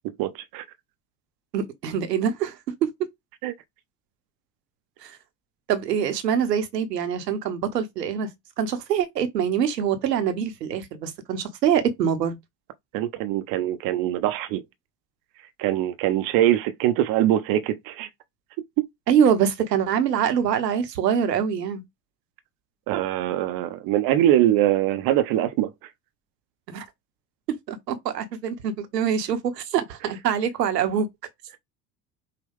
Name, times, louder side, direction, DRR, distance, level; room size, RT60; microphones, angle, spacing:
voice 1, 0.2-0.6 3.4-3.5 12.9-14.6 15.6-18.1 22.9-25.7, right 12 dB, 45° right, 0.7 m, -23 dB
voice 2, 1.5-2.9 5.0-5.2 5.7-8.3 8.6-12.4 19.1-21.8 26.7-26.9 27.7-31.1, right 8 dB, 75° right, 1.0 m, -24 dB
5.6 x 2.2 x 3.5 m
figure-of-eight pair, 65°, 50 cm